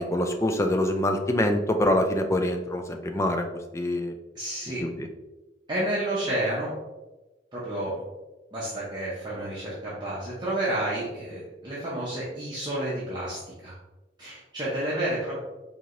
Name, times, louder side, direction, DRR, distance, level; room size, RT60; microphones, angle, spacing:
voice 1, 0.0-3.5 3.7-4.1 4.8-5.1, left 1 dB, 15° left, 5 dB, 0.3 m, -25 dB
voice 2, 4.3-4.8 5.7-6.7 7.5-8.0 8.5-13.7 14.2-15.3, right 1 dB, 25° right, -8 dB, 0.8 m, -30 dB
4.6 x 2.8 x 2.6 m, 1.1 s
head